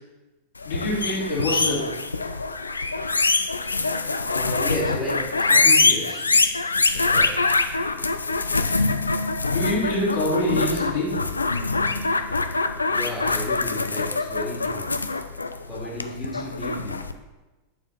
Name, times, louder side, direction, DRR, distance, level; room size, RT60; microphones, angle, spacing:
sound 1, 0.6-17.1, left 3 dB, 80° left, 0.3 m, -24 dB
voice 1, 0.6-1.8 9.5-11.1, left 1 dB, 60° left, -6 dB, 2.4 m, -25 dB
voice 2, 4.3-6.2 6.9-7.4 12.9-14.9 15.7-17.0, left 1 dB, 10° left, -6 dB, 2.4 m, -33 dB
8.9 x 4.3 x 4.0 m, 1.2 s
figure-of-eight pair, 90°, 0 cm